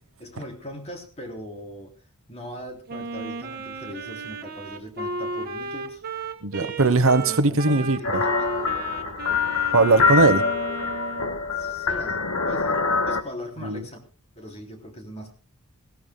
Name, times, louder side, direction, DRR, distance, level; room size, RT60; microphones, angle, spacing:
voice 1, 0.2-1.9 2.3-6.0 6.5-6.7 7.2-8.5 11.5-14.0 14.4-15.3, equal, 30° left, 3.4 m, -40 dB
Wind instrument woodwind instrument, 2.9-11.4, right 2 dB, 45° right, 1.7 m, -34 dB
voice 2, 6.4-8.2 9.7-10.4 13.6-13.8, right 3 dB, 65° right, 1.1 m, -20 dB
sound 1, 8.0-13.2, left 4 dB, 75° left, 1.5 m, -24 dB
22.0 x 16.0 x 2.3 m
head